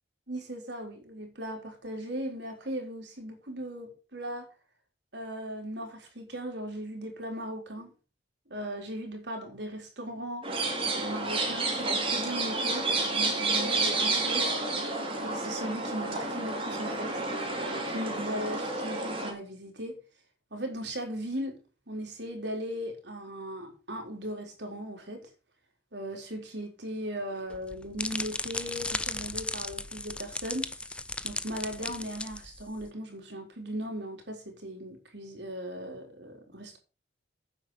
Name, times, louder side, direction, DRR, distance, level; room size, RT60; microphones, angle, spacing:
voice 1, 0.3-4.5 5.1-7.9 8.5-10.5 11.0-14.5 15.2-20.0 20.5-21.6 21.9-25.3 25.9-30.9 31.2-36.8, equal, 70° right, 3.9 m, -38 dB
sound 1, 10.4-19.3, right 2 dB, 30° right, 3.7 m, -30 dB
sound 2, 27.5-32.9, left 2 dB, 5° left, 0.5 m, -36 dB
9.4 x 7.6 x 6.5 m
head